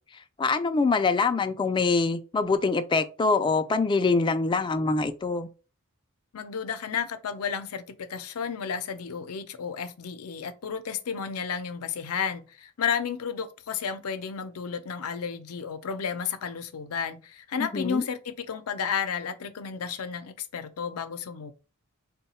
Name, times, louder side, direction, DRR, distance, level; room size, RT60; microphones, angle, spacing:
voice 1, 0.4-5.5 17.7-18.0, left 4 dB, 20° left, 0.3 m, -24 dB
voice 2, 6.3-21.5, left 7 dB, 85° left, 0.5 m, -32 dB
3.8 x 2.2 x 4.1 m
head